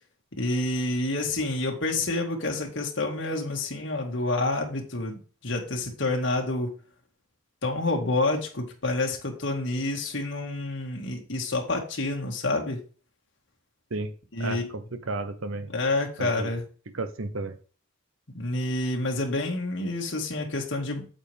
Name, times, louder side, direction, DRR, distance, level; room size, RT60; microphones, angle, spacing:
voice 1, 0.3-5.2 5.4-6.7 7.6-12.8 14.3-14.7 15.7-16.6 18.3-21.1, left 2 dB, 60° left, 2.1 m, -28 dB
voice 2, 14.4-15.7 16.2-16.5 16.9-17.6, right 2 dB, 85° right, 1.1 m, -33 dB
8.8 x 7.8 x 3.6 m
head